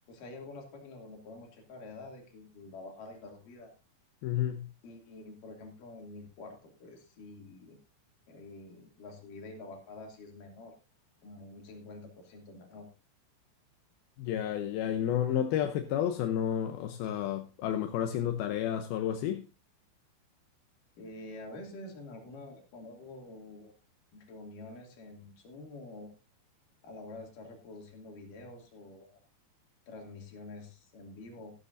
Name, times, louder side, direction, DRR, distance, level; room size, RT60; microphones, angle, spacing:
voice 1, 0.1-3.7 4.8-7.8 8.3-10.7 11.2-12.9 21.0-23.7 24.1-26.1 26.8-29.2 29.9-31.5, left 2 dB, 55° left, 3.9 m, -47 dB
voice 2, 4.2-4.7 14.2-19.5, left 10 dB, 75° left, 2.4 m, -31 dB
14.5 x 12.5 x 2.6 m
omnidirectional pair, 5.0 m